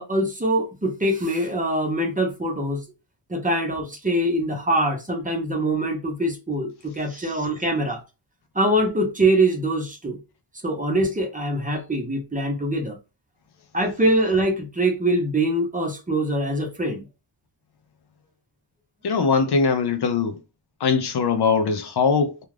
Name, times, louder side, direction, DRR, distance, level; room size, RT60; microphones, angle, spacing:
voice 1, 0.0-2.8 3.3-8.0 8.5-10.2 10.6-13.0 13.7-17.0, right 1 dB, 20° right, 0.7 m, -23 dB
voice 2, 19.0-20.4 20.8-22.4, left 5 dB, 60° left, 0.5 m, -21 dB
2.4 x 2.3 x 3.2 m
wide cardioid pair, 95°, 44 cm